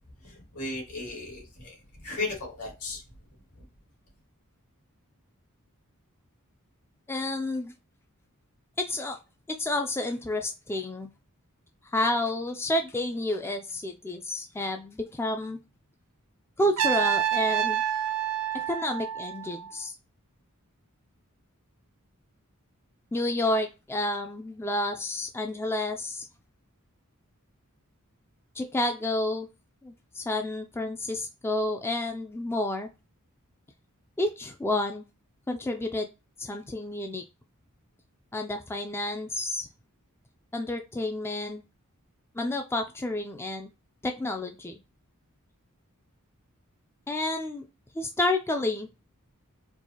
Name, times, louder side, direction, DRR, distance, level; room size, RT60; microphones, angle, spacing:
voice 1, 0.2-3.0, left 2 dB, 80° left, 2.2 m, -36 dB
voice 2, 7.1-7.7 8.8-9.2 9.5-11.1 11.9-15.6 16.6-17.8 18.5-19.9 23.1-26.3 28.6-29.5 29.8-32.9 34.2-35.0 35.5-36.1 36.4-37.2 38.3-39.7 40.5-41.6 42.3-43.7 44.0-44.8 47.1-47.7 47.9-48.9, left 1 dB, 10° left, 0.3 m, -30 dB
Trumpet, 16.8-19.7, right 9 dB, 75° right, 0.4 m, -28 dB
4.5 x 2.4 x 2.8 m
head